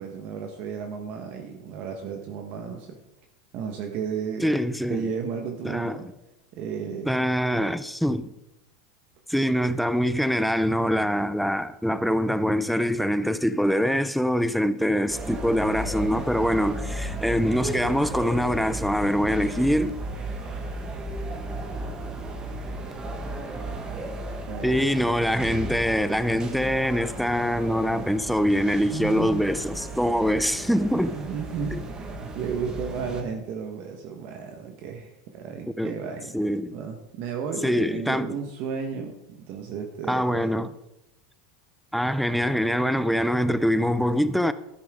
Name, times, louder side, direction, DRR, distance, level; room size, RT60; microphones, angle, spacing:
voice 1, 0.0-3.0 3.5-4.5 4.9-6.1 6.5-7.2 24.5-25.0 28.9-29.6 31.1-36.4 36.7-40.6, right 6 dB, 50° right, 1.4 m, -33 dB
voice 2, 4.4-5.1 5.6-6.1 7.1-8.3 9.3-19.9 24.6-31.2 31.7-31.8 35.8-35.9 36.3-36.8 37.6-38.3 40.1-40.7 41.9-44.5, equal, ahead, 0.5 m, -24 dB
sound 1, 15.1-33.2, right 1 dB, 20° right, 1.6 m, -34 dB
13.0 x 11.5 x 3.8 m
supercardioid pair, 140°, 3 cm